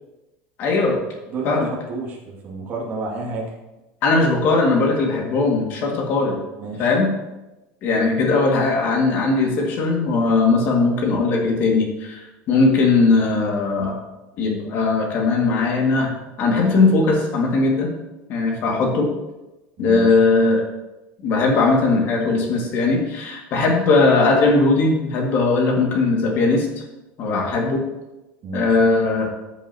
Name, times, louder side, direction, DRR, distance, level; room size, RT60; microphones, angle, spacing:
voice 1, 0.6-1.0 1.4-1.7 4.0-6.4 6.8-7.1 7.8-12.2 12.5-13.9 14.4-16.1 16.4-17.9 18.3-19.1 19.8-20.6 21.2-26.7 27.2-27.8 28.5-29.3, left 3 dB, 40° left, 0 dB, 2.2 m, -19 dB
voice 2, 1.3-3.5 6.6-6.9 19.8-20.3 28.4-28.8, right 3 dB, 35° right, -2 dB, 2.3 m, -30 dB
14.0 x 7.2 x 2.9 m, 1.0 s
cardioid pair, 165°, 5 cm